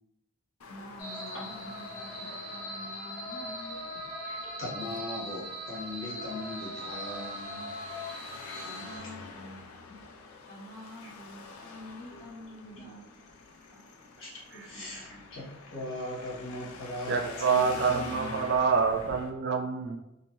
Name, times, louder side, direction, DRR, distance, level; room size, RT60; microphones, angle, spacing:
Traffic noise roadway noise, 0.6-19.3, left 4 dB, 85° left, 0.5 m, -48 dB
voice 1, 0.7-3.9 8.6-9.6 10.3-13.0 14.5-15.2, left 1 dB, 45° left, -6 dB, 0.6 m, -47 dB
sound 1, 1.0-9.0, equal, 20° left, 1.1 m, -40 dB
voice 2, 4.2-7.7 8.5-8.7 13.7-13.8 14.2-18.6, left 1 dB, 65° left, -6 dB, 1.2 m, -39 dB
voice 3, 17.1-20.0, right 5 dB, 50° right, 3 dB, 0.4 m, -27 dB
3.0 x 2.6 x 2.7 m, 0.90 s
head